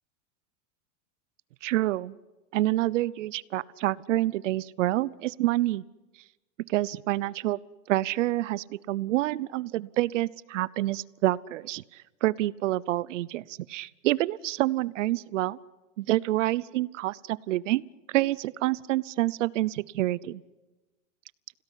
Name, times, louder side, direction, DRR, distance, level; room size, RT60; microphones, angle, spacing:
voice 1, 1.6-2.1 2.5-5.8 6.7-7.6 7.9-11.8 12.2-15.6 16.0-20.4, right 16 dB, 75° right, 21 dB, 0.8 m, -27 dB
28.0 x 17.5 x 10.0 m, 1.2 s
supercardioid pair, 160°, 37 cm